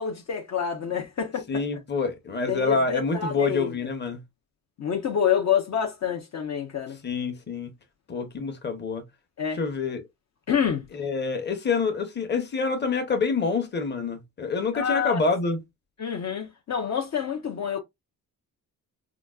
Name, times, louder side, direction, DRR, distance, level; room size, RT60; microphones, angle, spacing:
voice 1, 0.0-1.6 2.5-3.7 4.8-7.0 9.4-9.6 10.5-10.8 14.7-15.2 16.0-17.8, left 7 dB, 55° left, 0.8 m, -27 dB
voice 2, 1.5-4.2 7.0-7.7 8.1-9.0 9.6-10.0 10.9-15.6, left 4 dB, 30° left, 1.0 m, -27 dB
5.0 x 2.4 x 2.3 m
wide cardioid pair, 135°, 34 cm